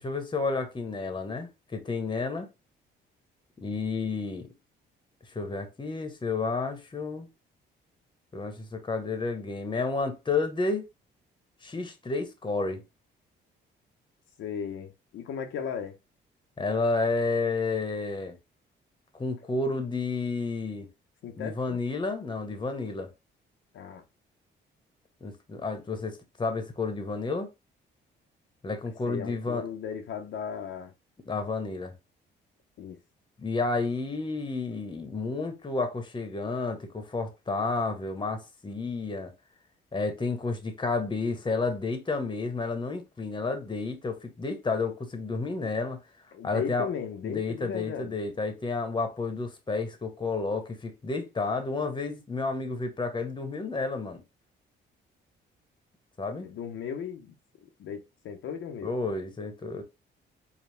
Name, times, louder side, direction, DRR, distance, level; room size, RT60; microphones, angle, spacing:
voice 1, 0.0-2.5 3.6-4.5 5.3-7.3 8.3-10.9 11.6-12.8 16.6-18.4 19.2-20.9 21.4-23.1 25.2-27.5 28.6-29.7 31.2-31.9 33.4-39.3 39.9-46.0 46.4-46.9 47.2-54.2 56.2-56.5 58.8-59.8, left 3 dB, 25° left, 1.0 m, -31 dB
voice 2, 14.4-15.9 21.2-21.8 23.7-24.0 29.1-30.9 32.8-33.0 46.3-48.2 56.4-57.3 57.8-58.9, left 7 dB, 75° left, 0.8 m, -36 dB
4.6 x 2.3 x 3.3 m
cardioid pair, 90°, 20 cm